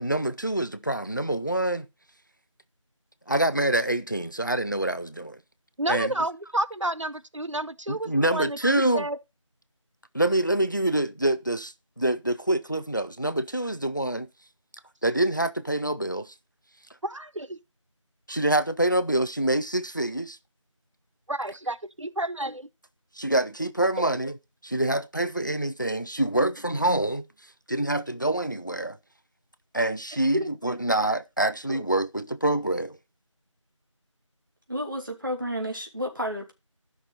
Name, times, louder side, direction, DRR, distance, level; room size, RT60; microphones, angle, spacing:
voice 1, 0.0-1.9 3.3-5.4 5.9-6.1 7.9-9.1 10.1-14.3 15.0-16.3 18.3-20.4 23.2-24.3 24.6-27.3 27.7-29.0 29.7-33.0, right 1 dB, 35° left, 0.6 m, -26 dB
voice 2, 5.8-9.2 17.0-17.6 21.3-22.7 30.3-30.5 31.7-31.8, right 1 dB, 65° right, 0.8 m, -30 dB
voice 3, 34.7-36.5, equal, 40° right, 2.6 m, -31 dB
13.5 x 6.2 x 4.0 m
figure-of-eight pair, 180°, 17 cm